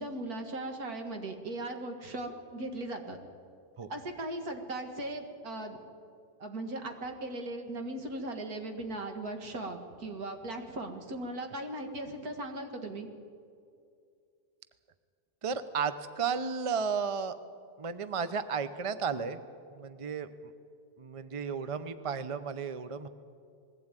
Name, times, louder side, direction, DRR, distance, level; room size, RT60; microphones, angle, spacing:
voice 1, 0.0-3.2 3.9-5.8 6.4-13.1, right 1 dB, 65° right, 5 dB, 2.3 m, -38 dB
voice 2, 15.4-17.4 17.8-19.4 19.7-20.5 21.0-23.1, right 6 dB, 35° right, 12 dB, 0.5 m, -33 dB
20.5 x 15.5 x 9.0 m, 2.4 s
omnidirectional pair, 1.7 m